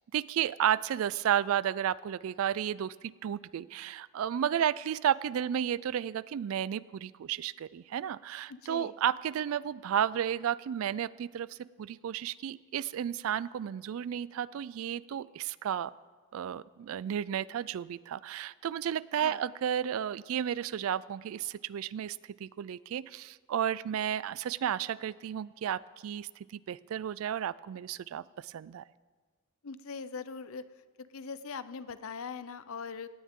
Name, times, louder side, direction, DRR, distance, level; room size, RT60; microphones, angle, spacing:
voice 1, 0.1-2.9 3.2-15.9 16.3-28.8, right 9 dB, 75° right, 20 dB, 0.3 m, -32 dB
voice 2, 8.5-8.9 19.2-19.4 29.6-30.6 31.0-33.1, left 5 dB, 75° left, 14 dB, 0.6 m, -41 dB
18.0 x 16.5 x 3.7 m, 1.5 s
head